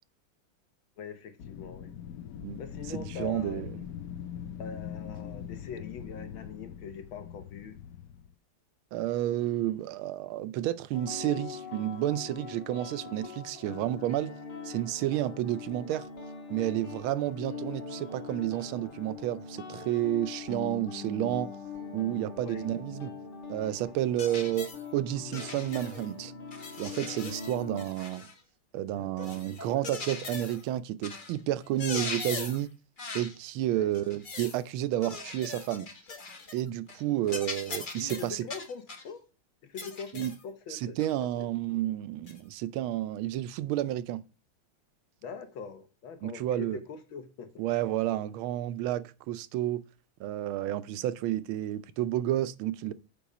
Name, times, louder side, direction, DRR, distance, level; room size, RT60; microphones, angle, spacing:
voice 1, 1.0-1.9 2.6-3.6 4.6-7.8 22.4-22.7 28.9-29.1 33.7-33.9 37.3-37.4 38.0-39.2 39.6-41.5 45.2-47.7, left 6 dB, 70° left, 1.9 m, -43 dB
Wind, 1.4-8.3, left 9 dB, 90° left, 0.8 m, -42 dB
voice 2, 2.9-3.8 8.9-14.4 14.6-16.0 16.5-21.5 21.9-23.1 23.5-26.3 26.8-28.3 28.7-32.7 33.1-35.9 36.5-38.4 40.1-40.3 40.7-44.2 46.2-46.8 47.6-49.8 50.2-52.9, right 13 dB, 80° right, 1.4 m, -31 dB
sound 1, 10.9-27.8, left 5 dB, 55° left, 2.1 m, -42 dB
sound 2, 24.2-24.8 25.3-26.1 26.5-28.4 29.2-30.6 31.0-31.3 31.6-32.7 33.0-33.4 33.9-34.6 35.0-36.6 36.9-37.0 37.3-39.1 39.8-40.4 41.0-41.1 42.3-42.4, left 4 dB, 35° left, 0.8 m, -40 dB
7.0 x 5.3 x 4.8 m
omnidirectional pair, 2.3 m